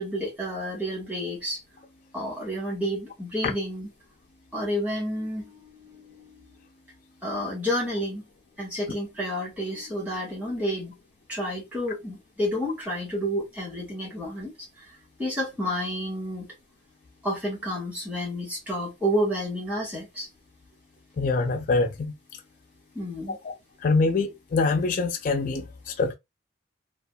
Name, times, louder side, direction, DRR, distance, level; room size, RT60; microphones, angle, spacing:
voice 1, 0.0-1.6 2.1-3.9 4.5-6.5 7.2-8.3 8.6-10.9 11.3-14.9 15.2-16.5 17.2-20.3 22.9-23.4, equal, 10° right, 1.4 m, -30 dB
voice 2, 21.2-22.1 23.3-23.5 23.8-26.1, left 3 dB, 45° left, 0.4 m, -25 dB
2.6 x 2.3 x 2.2 m
head